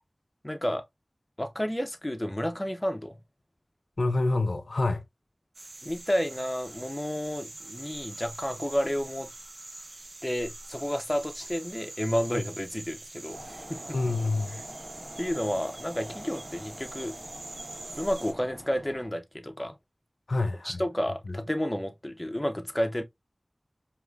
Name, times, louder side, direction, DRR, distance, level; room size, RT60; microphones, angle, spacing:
voice 1, 0.4-0.8 1.4-3.2 5.8-9.3 10.2-14.0 15.2-17.1 18.0-19.7 20.6-23.0, equal, 20° left, 0.8 m, -31 dB
voice 2, 4.0-5.0 12.3-12.4 13.9-14.6 20.3-20.8 21.3-21.4, left 2 dB, 80° left, 0.6 m, -27 dB
sound 1, 5.5-18.3, right 2 dB, 90° right, 0.7 m, -44 dB
sound 2, 13.3-19.1, equal, 10° right, 0.8 m, -45 dB
4.8 x 2.9 x 2.4 m
wide cardioid pair, 40°, 0 cm